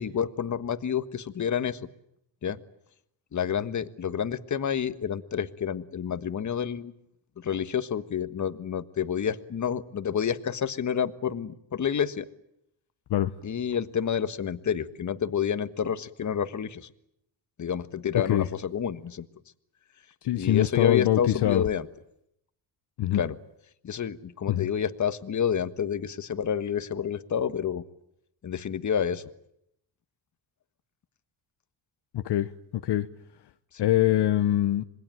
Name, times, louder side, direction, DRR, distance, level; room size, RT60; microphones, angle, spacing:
voice 1, 0.0-1.8 2.4-2.6 3.3-6.9 7.4-12.3 13.4-16.9 17.6-19.3 20.4-21.9 23.1-23.4 23.8-27.8 28.4-29.3 33.7-33.8, left 8 dB, 40° left, 1.5 m, -29 dB
voice 2, 20.2-21.6 23.0-23.2 24.5-24.7 32.1-33.1 33.8-34.8, left 13 dB, 60° left, 1.1 m, -24 dB
26.5 x 21.0 x 9.1 m
cardioid pair, 90°, 45 cm